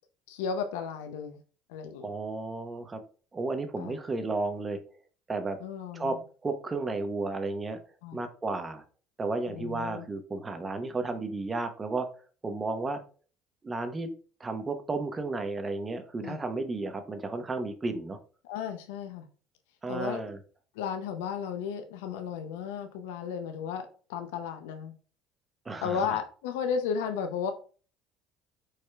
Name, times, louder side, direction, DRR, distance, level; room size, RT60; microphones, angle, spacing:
voice 1, 0.3-1.4 1.7-2.1 3.8-4.0 5.6-6.2 8.0-8.2 9.5-10.0 16.2-16.4 18.4-19.3 19.9-20.2 20.8-24.9 25.8-27.5, left 7 dB, 80° left, 7 dB, 0.5 m, -34 dB
voice 2, 2.0-3.0 3.3-4.8 5.3-5.6 5.9-6.2 6.4-7.8 8.1-8.8 9.2-12.1 12.4-13.0 13.6-14.1 14.4-18.2 19.8-20.4 25.6-26.2, right 3 dB, 25° right, 7 dB, 0.9 m, -33 dB
4.9 x 4.3 x 2.3 m, 0.39 s
hypercardioid pair, 70°, 0 cm